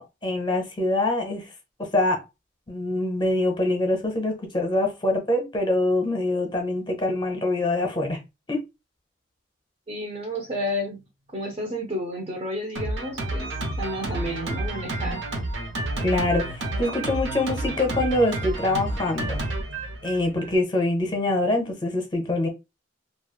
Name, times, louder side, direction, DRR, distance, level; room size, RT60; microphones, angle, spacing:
voice 1, 0.0-1.4 1.8-2.2 2.7-8.2 8.5-8.6 16.0-19.4 20.0-22.5, left 2 dB, 25° left, 0.9 m, -24 dB
voice 2, 9.9-11.0 11.3-13.5 13.8-15.3, equal, 30° right, 0.7 m, -31 dB
Drum kit, 12.8-20.6, right 2 dB, 80° right, 0.9 m, -30 dB
3.3 x 2.4 x 2.3 m
head